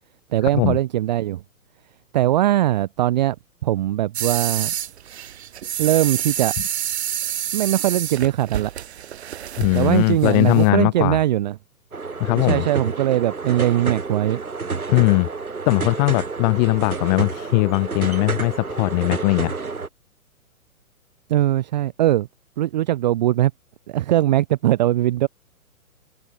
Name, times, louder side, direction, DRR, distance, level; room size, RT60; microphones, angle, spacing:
voice 1, 0.3-1.4 2.1-3.4 3.6-4.7 5.8-6.5 7.5-8.7 9.7-11.6 12.4-14.4 21.3-22.3 22.6-23.5 23.9-25.3, right 14 dB, 30° right, 0.8 m, -20 dB
sound 1, 4.1-10.7, right 10 dB, 45° right, 1.3 m, -28 dB
voice 2, 9.6-11.2 12.2-12.6 14.9-15.3 15.7-19.5, left 30 dB, 30° left, 2.7 m, -19 dB
sound 2, 11.9-19.9, right 4 dB, 75° right, 6.1 m, -29 dB
figure-of-eight pair, 120°, 44 cm